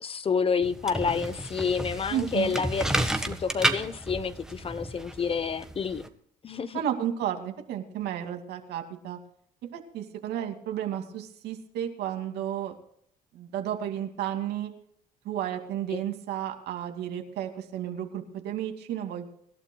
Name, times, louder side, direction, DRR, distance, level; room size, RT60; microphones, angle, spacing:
voice 1, 0.0-6.0 6.4-6.8 15.9-16.0, left 5 dB, 35° left, 0.9 m, -29 dB
sound 1, 0.6-6.1, right 1 dB, 5° right, 1.4 m, -31 dB
voice 2, 2.1-2.6 6.7-9.2 9.7-12.8 13.3-14.7 15.2-19.3, right 10 dB, 75° right, 2.5 m, -32 dB
25.5 x 12.0 x 2.3 m
cardioid pair, 110°, 17 cm